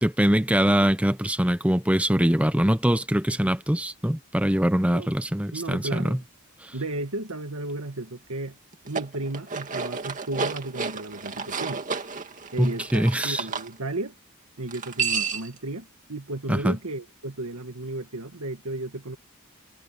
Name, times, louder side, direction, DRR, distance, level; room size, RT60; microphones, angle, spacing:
voice 1, 0.0-6.2 12.6-13.4 16.5-16.8, equal, 5° right, 0.9 m, -23 dB
voice 2, 4.8-5.2 5.5-6.2 6.7-8.6 8.8-11.8 12.5-14.1 14.6-19.2, right 2 dB, 90° right, 2.0 m, -34 dB
sound 1, 8.7-13.7 14.7-15.6, right 5 dB, 35° right, 2.3 m, -31 dB
head